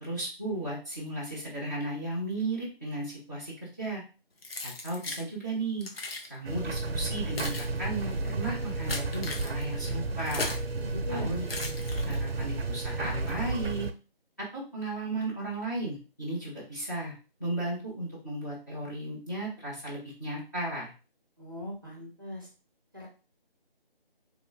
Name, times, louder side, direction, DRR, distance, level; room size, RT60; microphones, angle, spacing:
voice 1, 0.0-4.0 4.6-5.9 6.3-10.6 11.1-11.4 12.0-13.9 14.4-17.1 17.4-20.9, right 2 dB, 20° left, -7 dB, 0.7 m, -35 dB
Keys jangling, 4.4-5.3 5.8-6.3 7.0-10.7 11.4-12.4, left 2 dB, 80° left, 0.9 m, -38 dB
sound 1, 6.4-13.9, right 3 dB, 85° right, 0.6 m, -32 dB
voice 2, 10.8-11.4 21.4-22.5 22.9-23.1, left 1 dB, 20° right, -3 dB, 0.6 m, -40 dB
3.0 x 2.3 x 3.3 m, 0.34 s
figure-of-eight pair, 165°, 30 cm